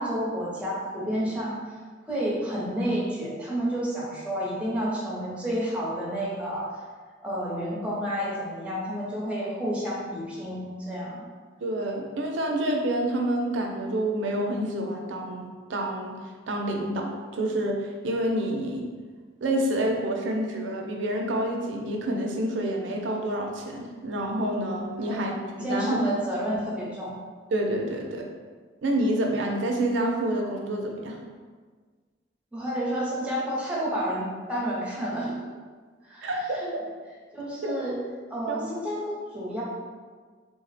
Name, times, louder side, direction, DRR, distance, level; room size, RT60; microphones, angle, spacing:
voice 1, 0.0-1.6 2.1-6.7 7.2-11.3 25.0-25.2 25.6-27.1 32.5-35.3 36.0-36.7 37.3-38.0 38.3-39.6, equal, 5° right, -6 dB, 0.7 m, -30 dB
voice 2, 11.6-16.2 16.5-18.8 19.4-26.0 27.5-28.3 28.8-31.2 36.2-36.8 37.6-37.9 38.5-38.7, right 1 dB, 70° right, 1 dB, 0.5 m, -28 dB
3.3 x 2.1 x 4.0 m, 1.5 s
head